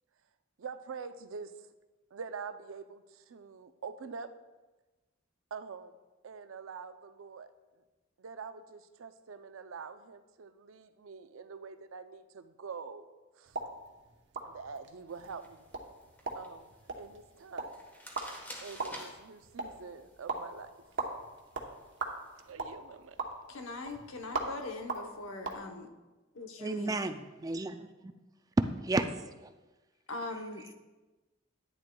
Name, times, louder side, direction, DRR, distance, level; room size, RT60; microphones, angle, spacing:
voice 1, 0.6-1.5 2.1-4.3 5.5-6.0 6.2-7.5 8.2-13.1 13.3-13.7 14.4-15.7 16.3-17.8 18.6-20.7 21.1-21.2 22.4-23.2, right 5 dB, 80° right, 0.5 m, -45 dB
sound 1, 13.5-25.6, right 3 dB, 60° right, 0.9 m, -41 dB
sound 2, 15.1-22.5, equal, 10° left, 1.2 m, -53 dB
voice 2, 23.5-25.9 26.3-27.1 30.1-30.6, left 2 dB, 85° left, 0.9 m, -41 dB
voice 3, 26.6-28.1 28.8-29.1 29.4-29.5, right 2 dB, 20° right, 0.3 m, -33 dB
10.5 x 10.0 x 2.3 m
head